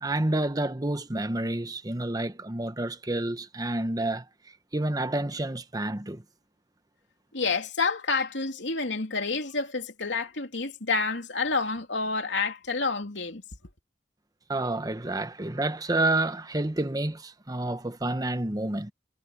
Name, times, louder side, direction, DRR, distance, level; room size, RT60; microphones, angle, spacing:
voice 1, 0.0-4.2 4.7-6.2 14.5-18.9, right 2 dB, 20° right, 1.0 m, -29 dB
voice 2, 7.3-13.4, left 4 dB, 85° left, 3.0 m, -29 dB
head